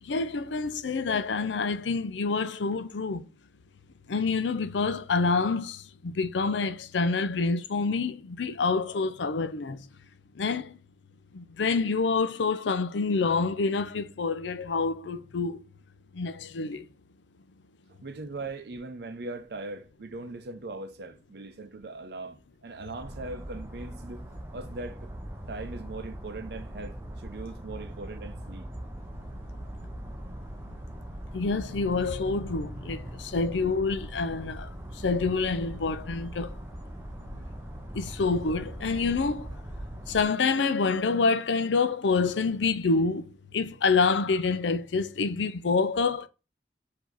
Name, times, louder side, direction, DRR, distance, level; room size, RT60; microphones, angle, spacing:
voice 1, 0.0-3.2 4.1-9.9 10.3-10.8 11.3-15.6 16.1-16.9 31.3-36.6 37.9-39.5 40.1-46.3, left 4 dB, 85° left, 0.5 m, -27 dB
voice 2, 17.9-24.3 24.5-25.1 25.5-28.7, right 3 dB, 65° right, 0.6 m, -40 dB
sound 1, 23.0-40.2, right 1 dB, 15° right, 0.5 m, -40 dB
4.8 x 2.8 x 3.9 m
head